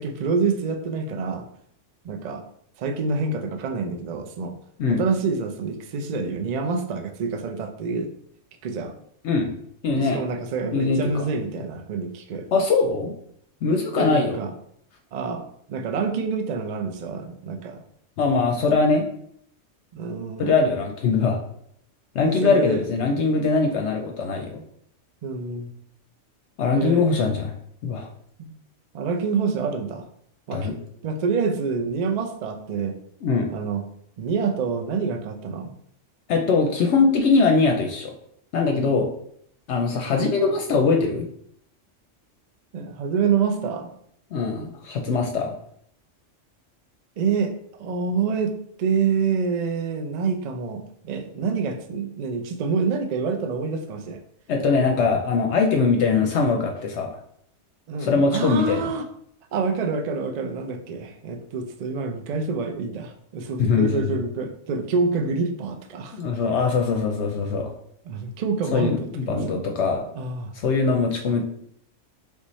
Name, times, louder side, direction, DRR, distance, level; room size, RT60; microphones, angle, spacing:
voice 1, 0.0-1.5 2.0-2.4 2.8-4.5 4.9-8.1 8.6-8.9 10.0-12.5 13.9-14.5 15.1-17.8 19.9-20.6 22.2-22.9 25.2-25.7 26.7-27.1 28.4-28.6 28.9-30.1 30.5-30.7 31.0-33.0 33.5-33.8 34.2-35.7 42.7-43.9 47.2-54.2 57.9-59.1 59.5-66.2 68.1-69.6 70.1-70.5, right 5 dB, 55° right, 5 dB, 0.4 m, -27 dB
voice 2, 9.8-10.2 10.7-11.1 12.5-13.1 13.6-14.4 18.2-19.1 20.4-21.4 22.1-24.6 26.6-27.5 27.8-28.1 30.5-30.7 33.2-33.5 36.3-38.1 38.5-39.1 39.7-41.3 44.3-45.5 54.5-57.2 58.0-58.8 63.6-64.2 66.1-67.7 68.7-70.1 70.6-71.4, left 4 dB, 70° left, 3 dB, 0.8 m, -22 dB
4.1 x 3.5 x 3.1 m, 0.68 s
omnidirectional pair, 1.3 m